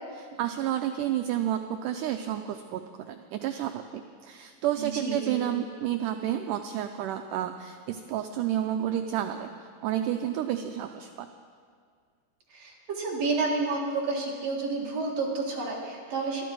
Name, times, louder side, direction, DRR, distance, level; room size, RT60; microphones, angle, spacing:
voice 1, 0.1-11.3, right 11 dB, 90° right, 6 dB, 1.8 m, -31 dB
voice 2, 4.8-5.5 12.5-16.4, right 3 dB, 50° right, -3 dB, 2.7 m, -30 dB
23.5 x 12.5 x 4.7 m, 2.1 s
omnidirectional pair, 4.4 m